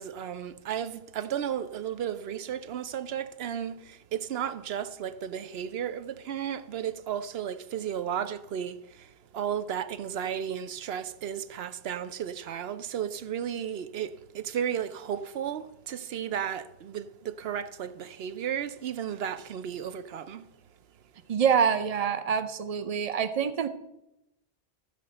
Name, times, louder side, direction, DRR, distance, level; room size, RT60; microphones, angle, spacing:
voice 1, 0.0-20.5, right 9 dB, 75° right, 0.9 m, -34 dB
voice 2, 21.3-23.7, right 7 dB, 40° right, 0.7 m, -26 dB
14.0 x 5.3 x 7.7 m
omnidirectional pair, 1.1 m